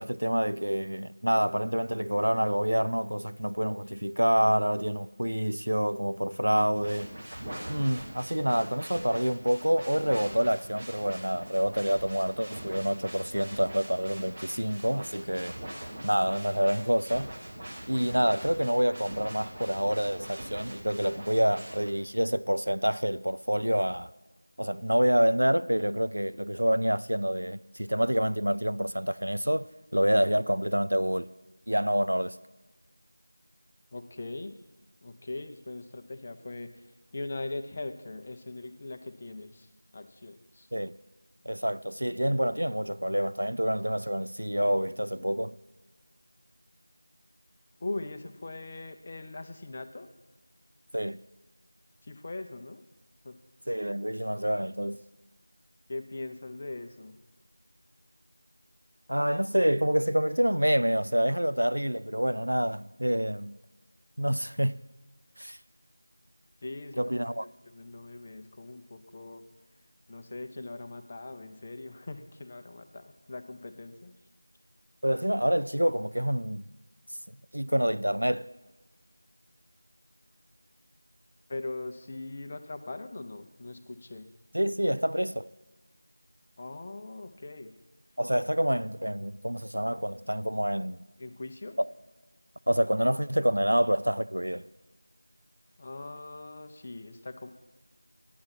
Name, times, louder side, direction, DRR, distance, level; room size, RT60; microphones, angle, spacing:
voice 1, 0.0-7.1 7.7-15.6 16.0-17.3 17.9-24.1 24.6-31.3 31.7-32.3 40.7-40.9 41.5-45.6 50.9-51.2 53.7-55.0 59.1-63.6 64.2-64.8 65.4-65.6 67.0-67.5 75.0-76.7 77.5-78.5 84.5-85.5 88.2-91.0 91.8-91.9 92.7-94.7, equal, 80° right, 0.3 m, -27 dB
sound 1, 6.7-21.9, right 1 dB, 35° right, 1.5 m, -43 dB
voice 2, 33.9-34.6 35.0-40.7 47.8-50.1 52.0-52.8 53.2-53.4 55.9-57.2 66.6-67.3 67.6-69.5 70.1-74.1 81.5-84.3 86.6-87.8 91.2-91.8 95.8-97.5, left 2 dB, 25° left, 0.5 m, -40 dB
9.0 x 8.6 x 5.8 m
figure-of-eight pair, 170°, 0 cm